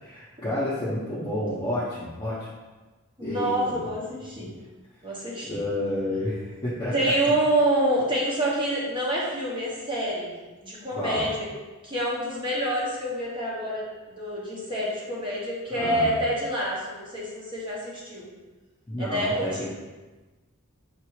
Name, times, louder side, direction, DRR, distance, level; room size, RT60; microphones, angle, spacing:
voice 1, 0.0-2.4 3.2-3.8 4.4-4.5 5.4-6.9 11.0-11.3 15.7-16.1 18.9-19.6, left 1 dB, 20° left, -11 dB, 0.8 m, -30 dB
voice 2, 3.2-4.5 5.0-5.6 6.9-10.3 10.6-11.5 11.8-18.3 19.0-19.6, right 1 dB, 25° right, -5 dB, 0.9 m, -27 dB
5.7 x 2.6 x 3.1 m, 1.2 s
head